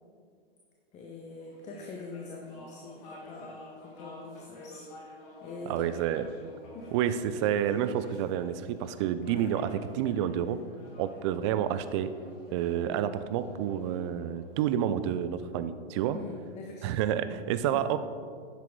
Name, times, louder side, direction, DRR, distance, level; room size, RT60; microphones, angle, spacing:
voice 1, 0.9-4.9 5.4-5.9 6.7-6.9 16.1-17.1, left 3 dB, 20° left, 1 dB, 0.8 m, -44 dB
sound 1, 1.4-15.1, left 1 dB, 40° left, 2.5 m, -50 dB
voice 2, 5.7-6.2 6.9-10.6 11.0-12.1 12.5-16.2 16.8-18.0, right 10 dB, 30° right, 12 dB, 0.4 m, -29 dB
9.8 x 7.4 x 3.7 m, 2.1 s
hypercardioid pair, 115°, 32 cm